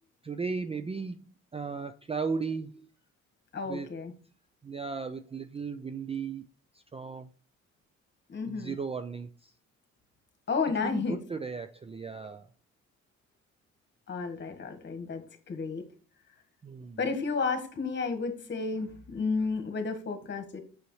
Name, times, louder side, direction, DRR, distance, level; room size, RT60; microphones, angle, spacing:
voice 1, 0.2-1.3 1.5-2.9 3.7-3.9 4.6-6.4 6.7-7.3 8.5-9.5 10.8-12.5 16.6-17.0, right 5 dB, 20° right, 10 dB, 0.4 m, -36 dB
voice 2, 3.5-4.1 8.3-8.8 10.5-11.2 14.1-15.8 17.0-20.6, left 4 dB, 35° left, 6 dB, 1.6 m, -32 dB
6.8 x 6.3 x 3.2 m, 0.39 s
cardioid pair, 90°, 30 cm